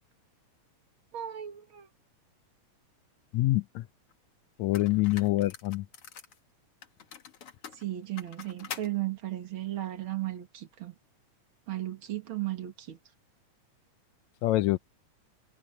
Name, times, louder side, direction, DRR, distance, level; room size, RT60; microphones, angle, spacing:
voice 1, 1.1-1.9 7.8-10.9 11.7-13.0, right 14 dB, 50° right, 2.1 m, -35 dB
voice 2, 3.3-3.9 4.6-5.9 14.4-14.8, left 17 dB, 80° left, 1.9 m, -26 dB
sound 1, 4.1-4.2 4.7-6.4 6.8-8.9, left 7 dB, 55° left, 2.5 m, -45 dB
omnidirectional pair, 3.3 m